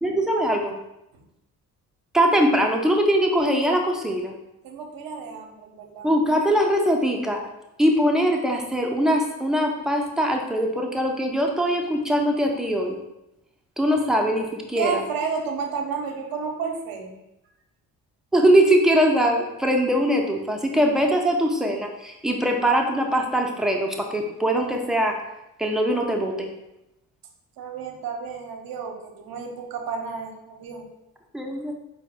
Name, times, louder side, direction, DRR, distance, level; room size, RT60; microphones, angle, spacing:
voice 1, 0.0-0.7 2.1-4.3 6.0-7.4 7.8-13.0 13.8-15.0 18.3-25.1 25.6-26.5 31.3-31.7, equal, ahead, 1 dB, 0.6 m, -22 dB
voice 2, 4.6-6.1 14.7-17.2 27.6-30.9, right 5 dB, 50° right, 3 dB, 0.8 m, -31 dB
4.7 x 2.1 x 3.5 m, 0.90 s
figure-of-eight pair, 45°, 44 cm